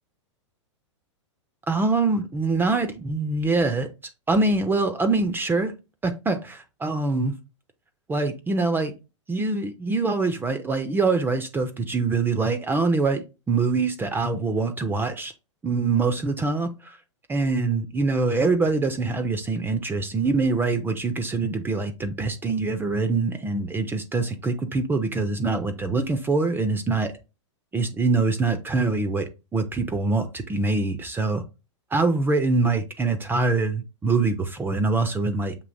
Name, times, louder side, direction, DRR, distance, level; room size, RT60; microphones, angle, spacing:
voice 1, 1.7-3.9 4.3-5.7 6.0-7.3 8.1-8.9 9.3-15.3 15.6-17.0 17.3-27.1 27.7-31.4 31.9-35.6, right 3 dB, 15° right, 8 dB, 0.5 m, -24 dB
6.9 x 2.8 x 2.6 m, 0.28 s
hypercardioid pair, 105°, 16 cm